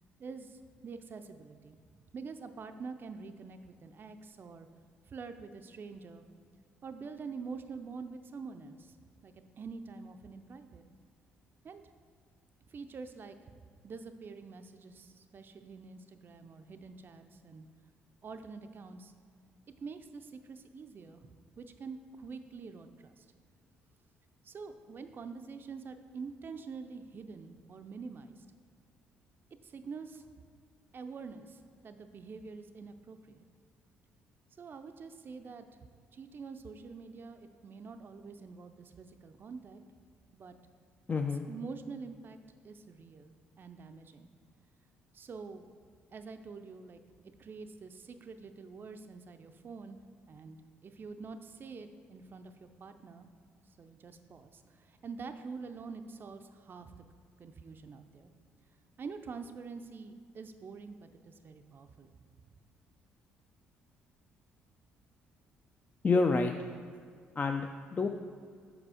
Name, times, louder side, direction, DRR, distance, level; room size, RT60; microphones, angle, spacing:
voice 1, 0.2-4.7 5.1-6.3 6.8-9.0 9.2-10.9 11.6-11.8 12.7-13.5 13.8-17.7 18.2-19.1 19.8-21.3 21.6-23.3 24.4-28.5 29.6-30.3 30.9-33.5 34.6-35.7 36.1-39.8 40.3-40.5 41.5-42.4 42.6-44.3 45.1-45.7 46.1-47.0 47.4-50.0 50.3-50.6 50.8-53.3 53.6-57.0 57.4-58.3 59.0-62.1, right 4 dB, 40° right, 7 dB, 0.5 m, -46 dB
voice 2, 41.1-41.5 66.0-66.5 67.4-68.1, left 4 dB, 30° left, 5 dB, 0.4 m, -28 dB
6.0 x 5.0 x 4.9 m, 2.1 s
hypercardioid pair, 55°, 5 cm